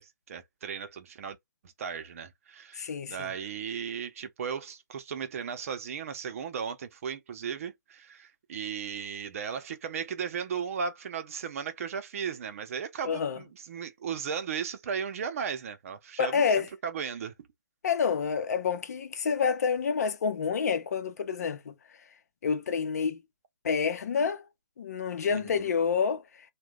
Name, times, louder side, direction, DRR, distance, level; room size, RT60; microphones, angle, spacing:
voice 1, 0.0-1.4 1.6-17.5 25.3-25.7, right 7 dB, 50° right, 0.7 m, -36 dB
voice 2, 2.7-3.3 13.0-13.4 16.2-16.7 17.8-21.7 22.4-23.2 23.6-24.5 24.8-26.2, left 6 dB, 60° left, 0.7 m, -28 dB
2.8 x 2.2 x 3.5 m
hypercardioid pair, 145°, 10 cm